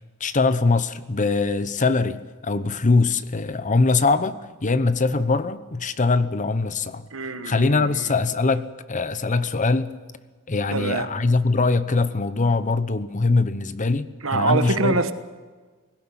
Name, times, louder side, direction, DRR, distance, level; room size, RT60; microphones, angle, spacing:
voice 1, 0.2-4.4 4.6-7.1 7.4-9.9 10.5-15.0, left 3 dB, 35° left, 14 dB, 0.9 m, -22 dB
voice 2, 7.1-8.1 10.7-11.1 14.2-15.1, right 3 dB, 70° right, 10 dB, 1.4 m, -24 dB
18.0 x 17.0 x 9.8 m, 1.4 s
head